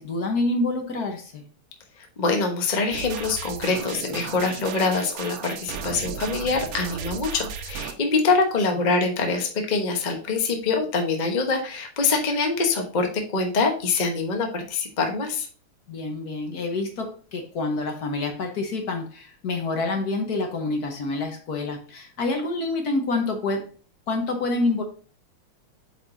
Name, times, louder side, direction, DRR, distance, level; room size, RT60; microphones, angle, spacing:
voice 1, 0.0-1.4 15.9-23.7 24.1-24.8, left 2 dB, 55° left, 1.3 m, -27 dB
voice 2, 2.0-15.5, left 4 dB, 35° left, 0.7 m, -24 dB
sound 1, 2.9-7.9, right 7 dB, 85° right, 1.7 m, -35 dB
8.0 x 5.0 x 2.6 m
omnidirectional pair, 2.4 m